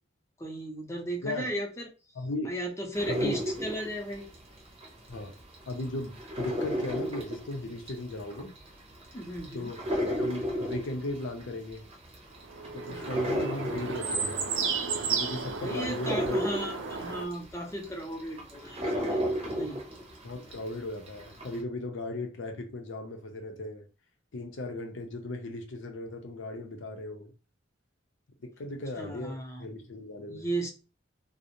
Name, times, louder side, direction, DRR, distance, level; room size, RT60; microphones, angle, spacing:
voice 1, 0.4-1.9 2.5-4.3 9.1-9.7 12.9-13.4 15.6-19.0 19.5-19.8 29.0-29.6 30.3-30.7, right 1 dB, 15° left, 0.5 m, -35 dB
voice 2, 2.1-2.5 3.1-3.4 5.1-5.4 5.7-8.5 9.5-11.8 12.7-14.5 15.0-16.4 20.2-23.9 24.3-27.3 28.4-30.5, left 2 dB, 75° left, 0.6 m, -37 dB
sound 1, 2.9-5.2 5.5-20.7 21.1-21.6, equal, 30° right, 0.6 m, -33 dB
sound 2, 12.4-17.2, right 5 dB, 80° right, 0.5 m, -33 dB
2.5 x 2.0 x 2.8 m
head